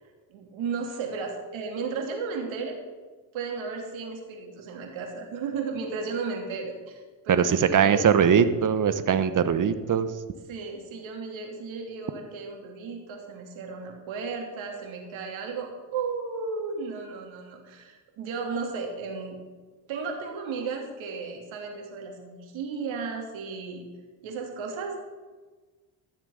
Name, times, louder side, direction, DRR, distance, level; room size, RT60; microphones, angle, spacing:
voice 1, 0.3-2.8 3.3-8.0 10.5-19.4 19.9-23.9 24.2-25.0, right 4 dB, 70° right, 1 dB, 3.1 m, -34 dB
voice 2, 7.3-10.1, right 7 dB, 40° right, 11 dB, 1.1 m, -21 dB
13.0 x 7.3 x 6.6 m, 1.3 s
supercardioid pair, 65°, 48 cm